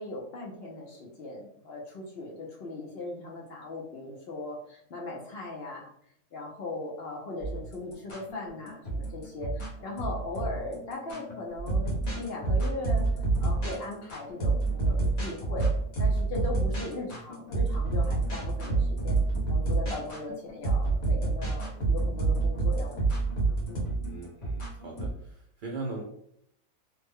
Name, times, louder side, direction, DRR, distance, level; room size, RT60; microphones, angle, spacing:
voice 1, 0.0-5.9 6.3-13.1 13.4-15.7 16.0-19.2 19.5-23.3 23.7-23.9, left 2 dB, 60° left, -2 dB, 0.7 m, -39 dB
sound 1, 7.4-25.1, right 2 dB, 35° left, 0.9 m, -36 dB
sound 2, 11.6-13.8 14.4-16.9 17.5-18.4 18.7-20.0 20.6-23.8, right 3 dB, 80° left, 1.5 m, -26 dB
voice 2, 24.0-26.0, right 3 dB, 75° right, -1 dB, 0.4 m, -39 dB
3.2 x 2.1 x 3.4 m, 0.70 s
omnidirectional pair, 1.5 m